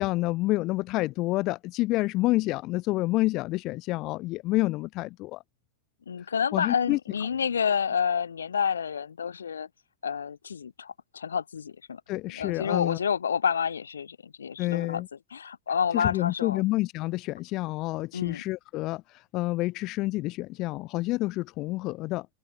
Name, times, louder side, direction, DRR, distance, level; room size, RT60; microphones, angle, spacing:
voice 1, 0.0-5.4 6.2-7.0 12.1-13.0 14.6-15.1 15.9-22.3, left 19 dB, 40° left, 0.4 m, -28 dB
voice 2, 6.1-9.7 10.0-12.0 12.4-15.0 15.3-16.6 18.1-18.4, left 7 dB, 70° left, 1.0 m, -29 dB
figure-of-eight pair, 90°, 0 cm